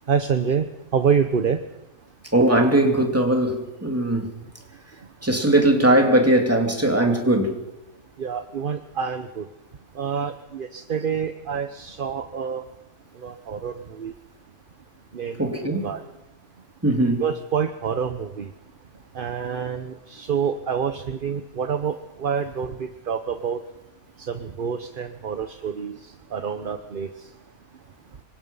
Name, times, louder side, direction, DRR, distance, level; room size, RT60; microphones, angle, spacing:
voice 1, 0.1-0.7 0.9-1.6 8.2-9.4 10.0-12.6 13.2-14.1 15.1-15.4 15.8-16.0 17.2-18.5 19.1-23.6 24.3-26.0 26.3-27.1, right 7 dB, 40° right, 0.9 m, -27 dB
voice 2, 2.3-4.3 5.2-7.6 15.4-15.9 16.8-17.2, right 1 dB, 10° right, 2.8 m, -19 dB
26.0 x 23.5 x 5.5 m
omnidirectional pair, 1.6 m